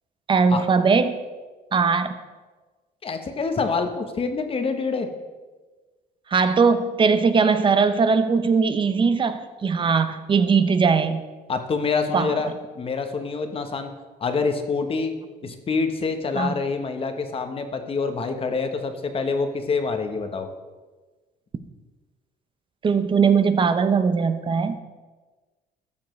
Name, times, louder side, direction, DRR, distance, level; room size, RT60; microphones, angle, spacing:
voice 1, 0.3-1.2 1.7-2.1 6.3-11.2 12.1-12.5 16.3-16.5 22.8-24.8, right 5 dB, 30° right, 10 dB, 0.7 m, -20 dB
voice 2, 3.0-5.1 11.5-13.9 14.2-15.1 15.4-20.5, left 4 dB, 35° left, 7 dB, 1.0 m, -26 dB
14.0 x 7.0 x 3.2 m, 1.3 s
cardioid pair, 110°, 17 cm